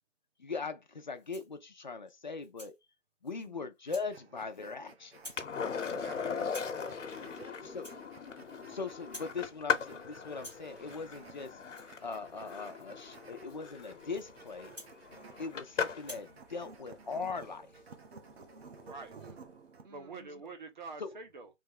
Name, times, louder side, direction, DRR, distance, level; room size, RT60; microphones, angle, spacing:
voice 1, 0.4-2.8 3.2-5.2 7.7-7.9 8.7-10.0 10.2-11.6 12.0-14.7 15.4-17.7 21.0-21.2, left 4 dB, 40° left, 0.5 m, -40 dB
Rattle (instrument), 1.1-1.6 2.1-2.8 3.2-3.5 3.9-4.1 4.4-4.8 5.1-5.5 5.8-6.1 6.4-6.8 7.2-7.4 7.7-8.7 9.0-9.4 9.7-10.0 10.3-15.6 16.0-16.3, left 1 dB, 5° right, 0.9 m, -53 dB
voice 2, 3.4-3.7 5.9-8.7 9.2-9.9 19.1-19.6 19.8-20.4, right 3 dB, 85° right, 1.7 m, -57 dB
sound 1, 3.9-19.9, right 5 dB, 55° right, 0.9 m, -55 dB
Skateboard, 5.4-16.2 18.8-18.9, left 6 dB, 70° left, 0.9 m, -39 dB
voice 3, 5.8-6.7 18.8-19.1 19.9-21.5, right 3 dB, 40° right, 0.9 m, -47 dB
3.6 x 2.9 x 4.5 m
hypercardioid pair, 165°, 38 cm